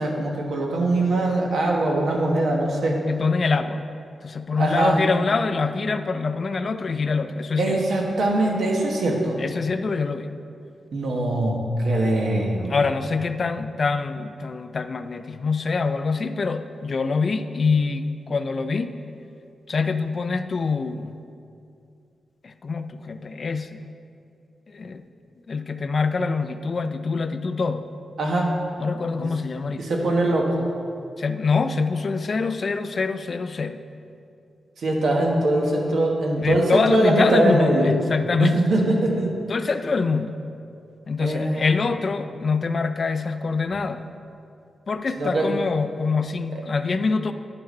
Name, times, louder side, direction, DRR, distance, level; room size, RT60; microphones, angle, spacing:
voice 1, 0.0-3.0 4.6-5.0 7.6-9.4 10.9-12.7 28.2-28.5 29.2-29.3 29.8-30.7 34.8-37.9 38.4-39.3 41.2-41.8 45.2-45.5 46.5-46.6, right 2 dB, 70° right, 0 dB, 1.4 m, -22 dB
voice 2, 3.1-3.9 4.2-7.8 9.4-10.3 12.7-18.9 19.7-21.1 22.4-23.8 24.7-25.0 25.5-27.9 28.8-29.9 31.2-33.8 36.4-38.6 39.5-40.4 41.1-44.0 44.9-47.3, left 4 dB, 40° left, 10 dB, 0.3 m, -25 dB
9.7 x 5.8 x 5.4 m, 2.5 s
wide cardioid pair, 145°, 0 cm